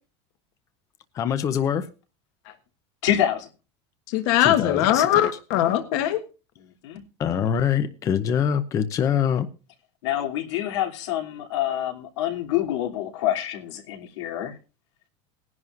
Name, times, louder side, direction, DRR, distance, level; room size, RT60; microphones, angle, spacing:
voice 1, 1.1-1.9 4.4-5.1 7.2-9.5, left 8 dB, 20° left, 0.7 m, -24 dB
voice 2, 3.0-3.5 6.6-7.0 10.0-14.5, left 12 dB, 85° left, 3.1 m, -27 dB
voice 3, 4.1-6.2, left 12 dB, 50° left, 1.4 m, -21 dB
19.5 x 11.0 x 2.6 m
supercardioid pair, 170°, 15 cm